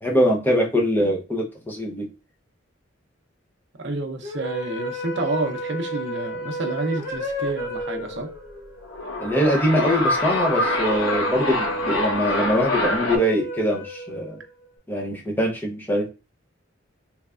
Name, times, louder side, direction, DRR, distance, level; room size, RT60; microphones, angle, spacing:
voice 1, 0.0-2.1 9.2-14.4 14.9-16.1, equal, 10° left, 0.7 m, -23 dB
voice 2, 3.8-8.3, right 2 dB, 65° right, 0.6 m, -29 dB
sound 1, 4.2-14.6, right 1 dB, 40° left, 1.3 m, -32 dB
sound 2, 8.8-13.2, left 1 dB, 80° left, 0.9 m, -25 dB
3.3 x 3.1 x 2.4 m
head